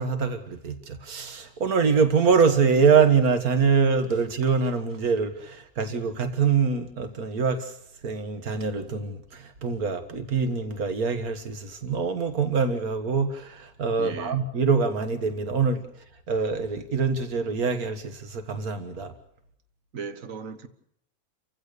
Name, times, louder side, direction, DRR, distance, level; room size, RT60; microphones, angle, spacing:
voice 1, 0.0-19.1, right 5 dB, 85° right, 2.1 m, -24 dB
voice 2, 14.0-14.5 19.9-20.7, right 5 dB, 65° right, 1.8 m, -37 dB
30.0 x 15.5 x 6.7 m
omnidirectional pair, 1.5 m